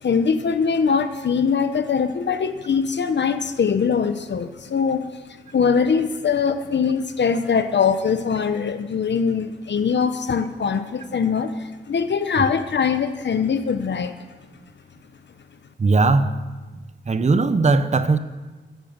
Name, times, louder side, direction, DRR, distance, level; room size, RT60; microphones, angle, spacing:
voice 1, 0.0-14.2, left 6 dB, 65° left, 0.9 m, -22 dB
voice 2, 15.8-16.4 17.1-18.2, right 3 dB, 35° right, 0.9 m, -18 dB
15.0 x 12.5 x 7.4 m
wide cardioid pair, 155°, 20 cm